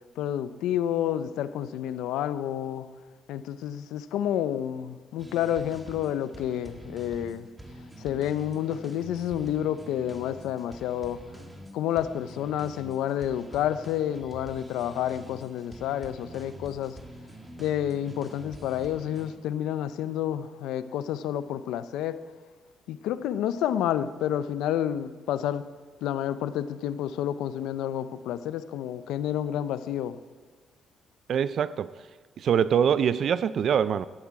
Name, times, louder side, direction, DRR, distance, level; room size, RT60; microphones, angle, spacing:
voice 1, 0.2-2.9 3.3-7.5 8.0-11.2 11.7-17.0 17.6-22.2 22.9-25.6 26.0-30.2, left 10 dB, 90° left, 13 dB, 0.5 m, -29 dB
sound 1, 5.2-19.4, right 1 dB, 15° right, 1.5 m, -46 dB
voice 2, 31.3-32.1 32.4-34.1, right 8 dB, 60° right, 16 dB, 0.4 m, -24 dB
13.0 x 11.0 x 4.8 m, 1.5 s
cardioid pair, 90°, 0 cm